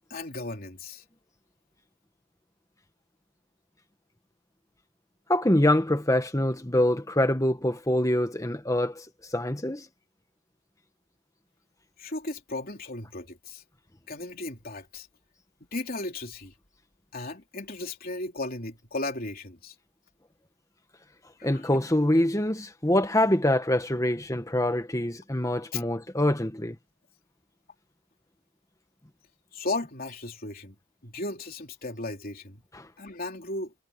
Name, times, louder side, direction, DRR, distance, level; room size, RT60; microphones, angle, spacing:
voice 1, 0.1-1.0 12.0-13.6 14.1-15.1 15.7-16.5 17.1-19.8 21.4-21.6 25.7-25.8 29.5-30.8 31.0-32.6 33.0-33.7, left 2 dB, 40° left, 3.4 m, -35 dB
voice 2, 5.3-9.0 9.3-9.8 21.4-26.7 32.7-32.8, left 1 dB, 15° left, 1.5 m, -25 dB
head